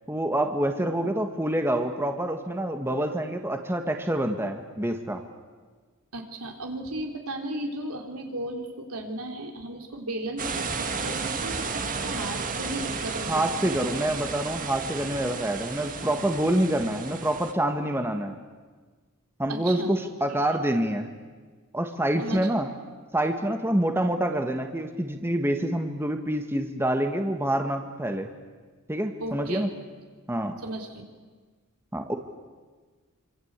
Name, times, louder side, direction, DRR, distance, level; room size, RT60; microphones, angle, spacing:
voice 1, 0.1-5.2 13.3-18.4 19.4-21.1 21.7-22.7 23.1-28.3 28.9-29.7 30.3-30.6 31.9-32.2, right 1 dB, 10° right, 5 dB, 1.6 m, -27 dB
voice 2, 6.1-14.0 19.5-20.0 22.2-22.5 29.2-29.7 30.6-31.0, right 1 dB, 85° right, 3 dB, 3.6 m, -35 dB
sound 1, 10.4-17.5, right 4 dB, 40° right, 1.9 m, -33 dB
26.5 x 25.5 x 8.3 m, 1.4 s
head